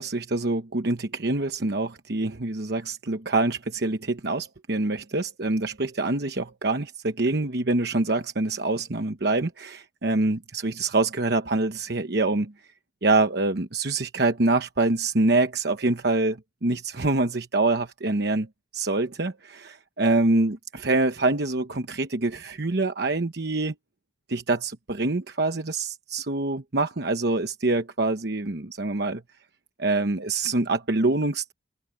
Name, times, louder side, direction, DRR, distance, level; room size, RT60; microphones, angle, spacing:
voice 1, 0.0-12.5 13.0-18.5 18.7-23.7 24.3-29.2 29.8-31.5, right 2 dB, 55° right, 1.0 m, -25 dB
head